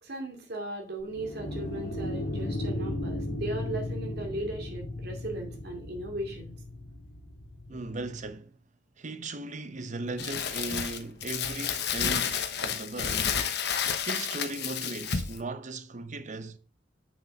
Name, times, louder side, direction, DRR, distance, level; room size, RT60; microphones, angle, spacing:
voice 1, 0.0-6.5, right 1 dB, 60° right, 2.5 m, -37 dB
sound 1, 1.0-8.3, left 1 dB, 85° left, 2.0 m, -36 dB
voice 2, 7.7-8.6 9.0-13.3 14.1-16.6, right 2 dB, 40° right, 0.8 m, -37 dB
Crumpling crinkling, 10.2-15.4, left 7 dB, 65° left, 1.0 m, -30 dB
8.0 x 6.2 x 3.6 m
head